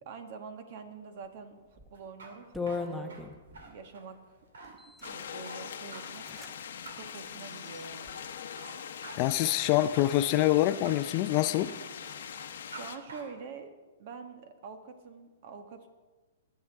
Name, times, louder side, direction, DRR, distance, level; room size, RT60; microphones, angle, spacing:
voice 1, 0.0-3.2 3.6-4.7 5.1-6.3 6.9-8.2 12.7-13.7 14.0-15.9, right 5 dB, 50° right, 1.5 m, -46 dB
Coming into building, 1.7-2.0 2.5-3.7 4.6-5.1 5.7-5.8 6.0-6.5 6.8-6.9 7.4-8.1, left 4 dB, ahead, 1.0 m, -38 dB
sound 1, 1.9-12.8 13.1-13.2, right 3 dB, 85° right, 2.6 m, -49 dB
sound 2, 5.0-13.0, left 8 dB, 70° left, 1.0 m, -42 dB
voice 2, 9.2-11.7, left 14 dB, 40° left, 0.5 m, -25 dB
22.0 x 8.1 x 3.6 m
hypercardioid pair, 145°, 0 cm